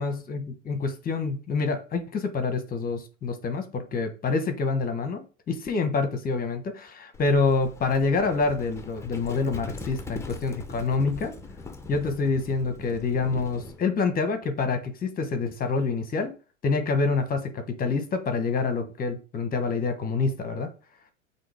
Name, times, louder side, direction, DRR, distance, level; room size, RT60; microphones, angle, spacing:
voice 1, 0.0-11.3 11.9-16.3 16.6-20.7, left 4 dB, 25° left, 8 dB, 1.1 m, -27 dB
Livestock farm animals working animals, 7.1-13.8, left 3 dB, 5° left, 0.7 m, -41 dB
7.6 x 2.9 x 4.8 m, 0.35 s
hypercardioid pair, 100°, 38 cm